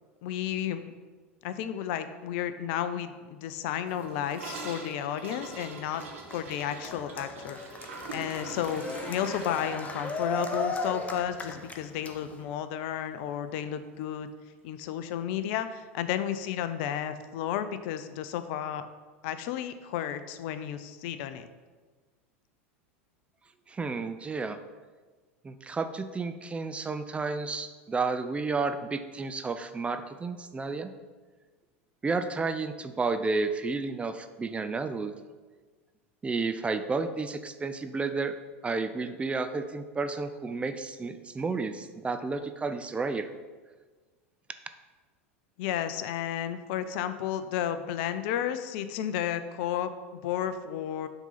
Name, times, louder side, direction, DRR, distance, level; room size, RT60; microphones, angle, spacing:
voice 1, 0.2-0.8 1.4-6.0 6.3-7.6 8.1-14.3 14.6-18.9 19.2-21.5 45.6-49.9 50.2-51.1, left 10 dB, 55° left, 11 dB, 0.5 m, -32 dB
Gurgling / Toilet flush, 3.9-12.1 12.4-12.5 12.8-13.2 13.5-13.6 13.9-14.0 15.0-15.1, right 3 dB, 75° right, 1.6 m, -44 dB
Cheering, 5.4-12.4, left 2 dB, 20° left, 0.8 m, -37 dB
voice 2, 23.7-24.6 25.4-30.9 32.0-35.1 36.2-38.4 38.6-43.3, right 4 dB, 15° right, 9 dB, 0.5 m, -31 dB
7.1 x 3.8 x 5.6 m, 1.4 s
hypercardioid pair, 85°, 7 cm